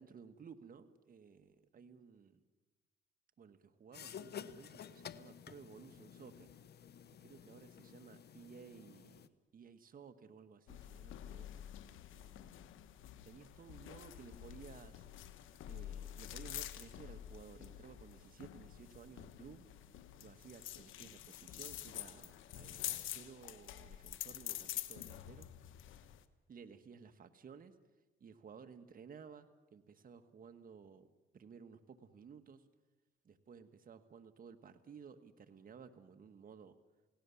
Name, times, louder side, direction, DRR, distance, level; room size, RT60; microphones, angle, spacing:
voice 1, 0.0-2.4 3.4-6.5 7.2-11.6 12.1-12.7 13.2-15.1 15.6-19.7 20.2-25.5 26.5-27.7 28.2-32.7 33.2-36.8, right 6 dB, 45° right, 9 dB, 1.5 m, -56 dB
sound 1, 3.9-9.3, left 8 dB, 55° left, 1.1 m, -52 dB
sound 2, 10.7-26.2, left 12 dB, 85° left, 1.3 m, -48 dB
29.5 x 17.5 x 7.1 m, 1.2 s
cardioid pair, 90°, 20 cm